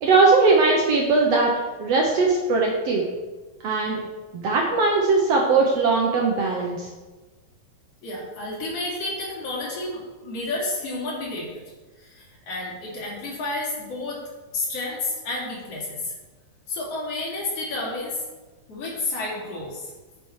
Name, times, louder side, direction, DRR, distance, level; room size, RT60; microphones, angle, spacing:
voice 1, 0.0-1.5 1.8-3.0 3.6-4.0 4.3-6.9, right 3 dB, 75° right, -1 dB, 1.4 m, -20 dB
voice 2, 8.0-11.6 12.0-14.2 14.5-16.1 16.7-18.2 18.7-19.9, left 2 dB, 45° left, -5 dB, 3.5 m, -31 dB
9.6 x 5.8 x 4.7 m, 1.2 s
omnidirectional pair, 4.0 m